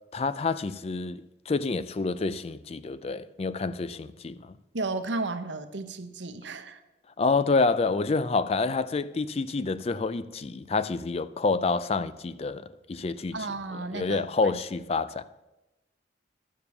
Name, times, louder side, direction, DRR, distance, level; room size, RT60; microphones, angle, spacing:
voice 1, 0.1-4.6 7.2-13.4 13.9-15.2, left 3 dB, 35° left, 0.4 m, -28 dB
voice 2, 4.7-6.8 13.3-14.6, right 3 dB, 75° right, 0.9 m, -34 dB
12.0 x 6.9 x 6.9 m
head